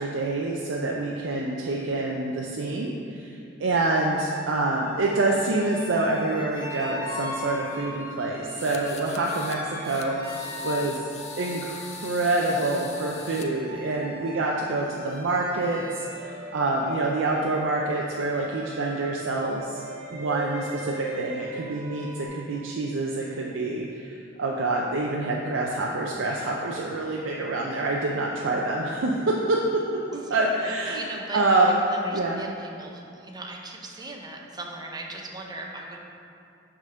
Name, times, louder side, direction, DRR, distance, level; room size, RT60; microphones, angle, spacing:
voice 1, 0.0-11.1 11.4-19.8 20.1-29.8 30.1-31.0 31.3-31.8 32.1-32.4, right 2 dB, 80° right, -2 dB, 0.5 m, -26 dB
sound 1, 3.9-22.3, equal, 55° right, 1.5 m, -40 dB
sound 2, 8.5-9.6 9.8-13.5, left 6 dB, 35° left, 0.4 m, -42 dB
voice 2, 30.3-36.0, right 2 dB, 20° right, 1 dB, 0.6 m, -39 dB
6.2 x 3.8 x 5.6 m, 2.5 s
head